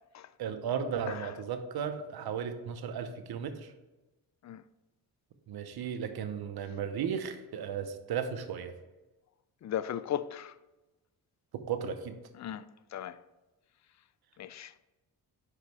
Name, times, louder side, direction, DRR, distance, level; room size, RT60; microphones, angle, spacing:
voice 1, 0.4-3.7 5.5-8.7 11.5-12.2, right 7 dB, 70° right, 0.8 m, -35 dB
voice 2, 9.6-10.6 12.4-12.6 12.9-13.2 14.4-14.7, left 10 dB, 45° left, 0.4 m, -36 dB
5.4 x 5.0 x 4.8 m
cardioid pair, 70°, 39 cm